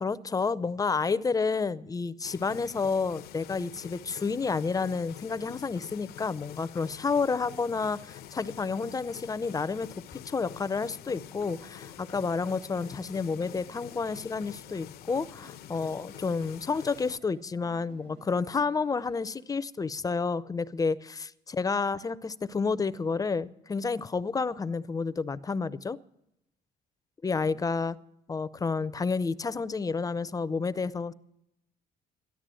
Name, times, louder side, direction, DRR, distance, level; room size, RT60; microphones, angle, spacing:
voice 1, 0.0-26.0 27.2-28.0 28.3-31.1, left 4 dB, 20° left, 18 dB, 0.5 m, -30 dB
sound 1, 2.2-17.2, left 12 dB, 65° left, 0.6 m, -47 dB
sound 2, 10.8-19.5, right 2 dB, 65° right, 4.9 m, -57 dB
13.0 x 11.5 x 7.5 m, 0.82 s
cardioid pair, 110°, 17 cm